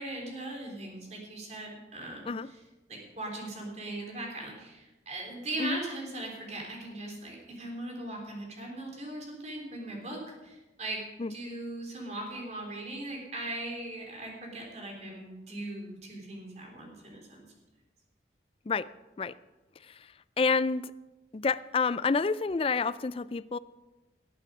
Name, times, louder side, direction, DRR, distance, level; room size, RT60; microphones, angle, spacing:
voice 1, 0.0-2.6 2.9-11.0 11.3-17.4, right 1 dB, 40° right, 0 dB, 3.5 m, -39 dB
voice 2, 20.4-20.9 21.3-23.6, left 4 dB, 30° left, 16 dB, 0.4 m, -28 dB
18.5 x 8.4 x 4.9 m, 1.1 s
head